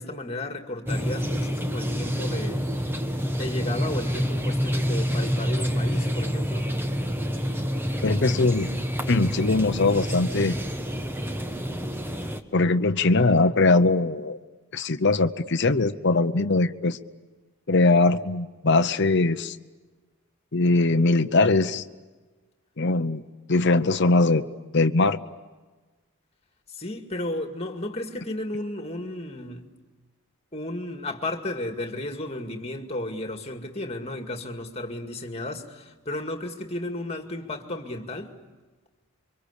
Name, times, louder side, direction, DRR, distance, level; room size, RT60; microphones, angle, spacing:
voice 1, 0.0-2.8 3.3-6.7 26.7-29.7 30.5-38.3, left 1 dB, 30° left, 2.2 m, -33 dB
sound 1, 0.9-12.4, equal, 10° right, 1.2 m, -27 dB
voice 2, 8.0-8.7 9.1-10.5 12.5-14.4 14.7-17.0 17.7-19.6 20.5-21.8 22.8-23.2 23.5-24.4 24.7-25.2, left 3 dB, 50° left, 0.8 m, -21 dB
28.5 x 24.5 x 8.3 m
head